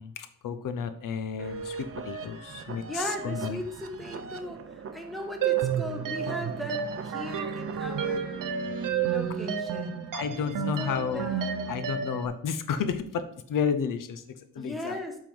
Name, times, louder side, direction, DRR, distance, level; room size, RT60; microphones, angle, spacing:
voice 1, 0.0-3.6 10.1-11.3 11.7-15.0, left 6 dB, 90° left, 11 dB, 0.7 m, -32 dB
sound 1, 1.4-12.4, right 5 dB, 45° right, 0.6 m, -40 dB
voice 2, 2.9-10.0 10.4-11.6 14.6-15.2, equal, ahead, 3 dB, 1.1 m, -38 dB
sound 2, 5.4-12.3, right 8 dB, 85° right, 0.8 m, -31 dB
7.6 x 3.7 x 5.3 m, 0.67 s
wide cardioid pair, 125°, 31 cm